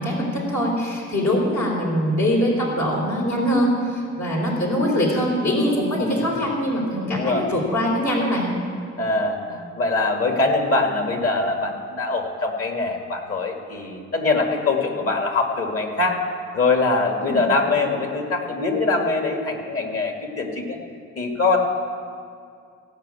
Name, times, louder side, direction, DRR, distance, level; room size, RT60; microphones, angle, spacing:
voice 1, 0.0-8.5 17.2-17.4, equal, 70° left, -4 dB, 3.9 m, -22 dB
voice 2, 7.1-7.5 9.0-16.2 16.5-20.8 21.2-21.6, left 3 dB, 50° left, 2 dB, 2.2 m, -23 dB
17.0 x 5.7 x 8.4 m, 2.3 s
cardioid pair, 90°, 30 cm